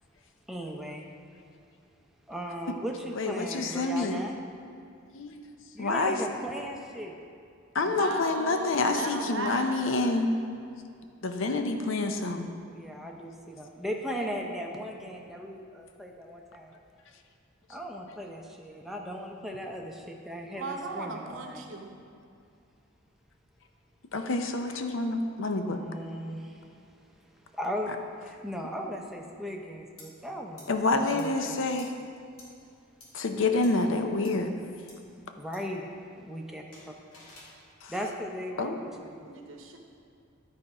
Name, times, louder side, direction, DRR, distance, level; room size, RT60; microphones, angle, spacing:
voice 1, 0.5-1.1 2.3-4.3 5.7-7.1 12.7-16.7 17.7-21.6 25.7-26.7 27.6-28.0 28.2-30.8 31.1-31.7 35.4-35.9 36.2-36.6 37.9-39.3, equal, ahead, 0 dB, 0.6 m, -37 dB
voice 2, 3.1-4.2 5.1-5.3 5.8-6.2 7.7-10.3 11.2-12.5 24.1-25.8 30.7-31.9 33.1-34.5 37.8-37.9 38.6-38.8, left 3 dB, 65° left, 6 dB, 0.6 m, -28 dB
voice 3, 7.8-10.2 20.6-21.9 39.2-39.8, right 3 dB, 65° right, 3 dB, 0.8 m, -37 dB
sound 1, 30.0-30.1 30.6-30.7 31.2-31.3 31.8-31.9 32.4-32.5 33.0-33.1 33.6-33.7 34.2-34.3 34.9-35.0 35.5-35.6 36.7-37.5, left 2 dB, 90° left, 1.9 m, -50 dB
10.5 x 4.3 x 4.8 m, 2.4 s
head